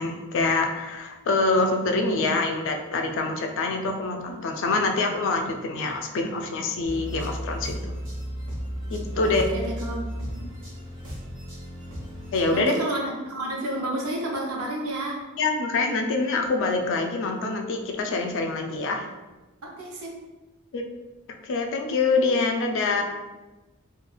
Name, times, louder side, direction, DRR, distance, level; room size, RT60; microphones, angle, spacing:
voice 1, 0.0-7.9 8.9-9.4 12.3-12.7 15.4-19.1 20.7-20.8 21.4-23.0, left 3 dB, 60° left, 4 dB, 0.4 m, -25 dB
sound 1, 6.8-12.6, equal, 65° right, 1.0 m, -34 dB
voice 2, 9.1-10.3 12.5-15.2 19.6-20.2 22.9-23.0, right 1 dB, 90° right, -1 dB, 0.6 m, -31 dB
3.1 x 2.3 x 2.3 m, 1.1 s
head